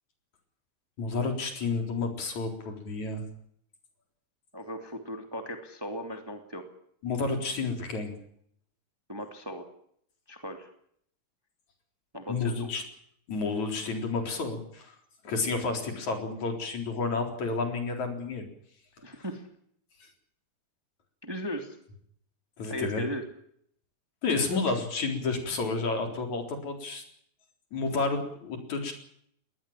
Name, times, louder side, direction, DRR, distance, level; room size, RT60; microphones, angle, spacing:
voice 1, 1.0-3.3 7.0-8.1 12.3-12.8 13.3-15.0 15.2-18.4 22.6-23.0 24.2-27.0 27.7-28.9, left 3 dB, 65° left, 4 dB, 5.3 m, -30 dB
voice 2, 4.5-6.7 9.1-9.7 10.3-10.7 12.1-12.7 19.0-19.5 21.2-21.8 22.7-23.2 24.5-24.6, equal, 10° right, 5 dB, 2.3 m, -37 dB
21.5 x 19.5 x 7.5 m, 0.67 s
omnidirectional pair, 3.6 m